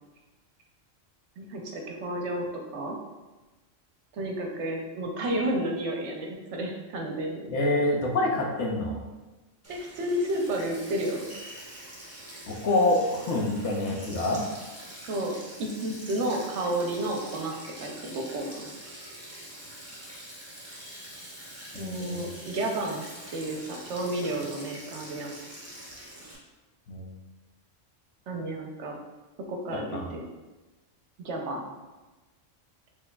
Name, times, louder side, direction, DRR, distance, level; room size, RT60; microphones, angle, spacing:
voice 1, 1.4-2.5 2.7-3.0 4.1-7.5 9.7-11.3 15.1-18.7 21.7-23.0 23.3-25.3 28.3-29.0 29.5-30.2 31.2-31.7, right 1 dB, 70° right, 1 dB, 0.8 m, -31 dB
voice 2, 7.5-9.0 12.5-14.5 21.7-22.2 26.9-27.1 29.7-30.1, left 2 dB, 70° left, 0 dB, 0.9 m, -27 dB
Sink (filling or washing), 9.6-26.3, right 1 dB, 15° right, 0.6 m, -45 dB
4.5 x 2.9 x 2.2 m, 1.1 s
omnidirectional pair, 1.3 m